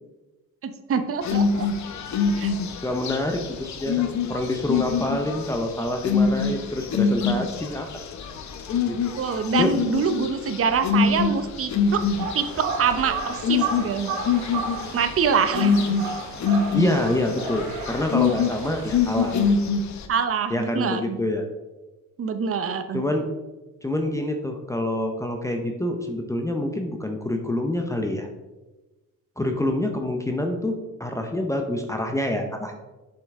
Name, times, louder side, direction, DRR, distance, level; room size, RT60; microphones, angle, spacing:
voice 1, 0.6-1.7 2.4-2.5 8.9-12.0 12.3-14.1 14.9-15.7 20.1-21.2 22.2-23.0, right 6 dB, 45° right, 9 dB, 0.8 m, -25 dB
sound 1, 1.2-20.1, left 5 dB, 55° left, 0.9 m, -25 dB
voice 2, 2.8-7.9 8.8-9.0 9.3-9.8 16.7-19.3 20.5-21.5 22.9-23.3 23.8-28.3 29.4-32.7, left 1 dB, 10° left, 3 dB, 0.7 m, -26 dB
sound 2, 11.9-19.5, right 4 dB, 85° right, 1.9 m, -33 dB
7.5 x 5.5 x 3.6 m, 1.1 s
cardioid pair, 115°, 33 cm